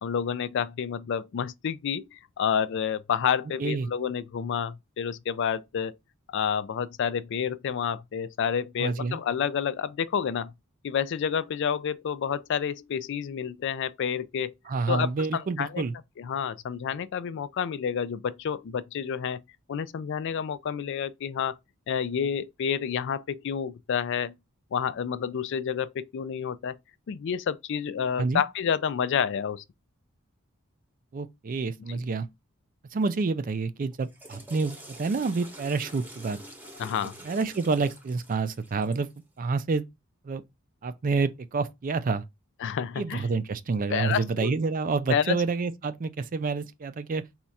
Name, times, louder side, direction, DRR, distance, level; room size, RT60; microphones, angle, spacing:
voice 1, 0.0-5.9 6.3-10.5 10.8-14.5 14.9-15.8 16.2-19.4 19.7-21.5 21.9-24.3 24.7-26.8 27.1-29.6 31.9-32.0 36.8-37.2 42.6-43.3 43.9-44.5 45.1-45.4, left 7 dB, 60° left, 0.3 m, -29 dB
voice 2, 3.6-3.9 8.8-9.2 14.7-15.9 28.2-28.4 31.1-32.3 32.9-36.4 37.2-39.1 39.4-39.8 40.2-40.4 40.8-42.2 43.0-47.2, right 4 dB, 40° right, 0.4 m, -28 dB
Water / Toilet flush, 33.9-39.2, right 1 dB, 10° right, 0.8 m, -47 dB
4.2 x 2.4 x 4.1 m
head